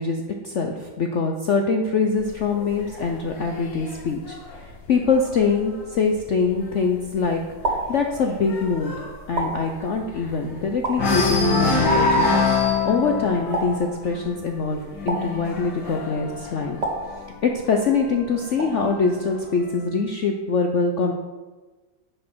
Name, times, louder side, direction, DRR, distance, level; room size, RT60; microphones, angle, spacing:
voice 1, 0.0-8.9 9.3-12.3 12.8-16.8 17.4-21.1, left 4 dB, 60° left, 3 dB, 0.8 m, -24 dB
sound 1, 2.2-5.8 6.2-6.5 6.8-6.9 7.3-10.6 10.9-17.5 18.3-19.3, left 3 dB, 75° left, 2.2 m, -25 dB
sound 2, 6.5-7.0 7.6-8.6 9.4-10.2 10.8-11.7 12.3-13.0 13.5-14.4 15.1-15.9 16.8-17.8 18.6-19.2, right 2 dB, 65° right, 2.1 m, -32 dB
9.7 x 5.4 x 6.2 m, 1.2 s
omnidirectional pair, 2.0 m